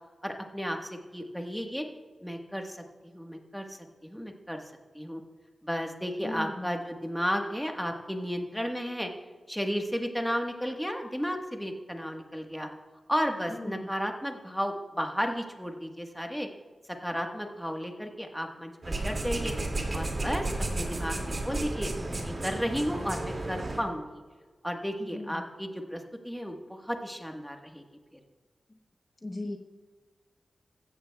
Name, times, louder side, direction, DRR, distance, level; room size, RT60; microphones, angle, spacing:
voice 1, 0.2-0.8 1.1-1.8 2.2-2.8 3.1-4.6 4.9-5.2 5.6-9.1 9.5-12.7 13.1-16.5 17.0-19.5 19.9-24.2 24.6-27.8, equal, ahead, 3 dB, 1.4 m, -33 dB
voice 2, 6.2-6.7 13.5-13.8 25.0-25.3 29.2-29.6, left 2 dB, 30° left, 2 dB, 0.9 m, -37 dB
sound 1, 18.8-23.8, right 2 dB, 45° right, 2.3 m, -33 dB
16.0 x 13.5 x 2.3 m, 1.4 s
wide cardioid pair, 80°, 0 cm